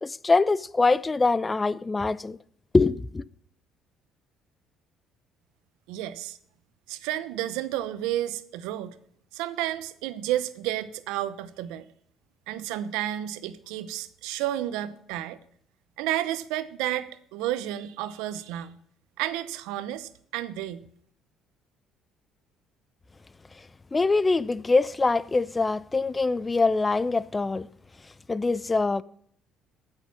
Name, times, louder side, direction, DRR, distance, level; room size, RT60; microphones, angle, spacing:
voice 1, 0.0-2.4 2.7-3.2 23.9-27.7 28.3-29.0, left 3 dB, 20° left, 0.5 m, -23 dB
voice 2, 5.9-6.4 6.9-8.9 9.3-11.8 12.5-15.4 16.0-18.8 19.2-20.8, right 13 dB, 90° right, 0.8 m, -31 dB
15.5 x 6.6 x 6.1 m
cardioid pair, 90°, 0 cm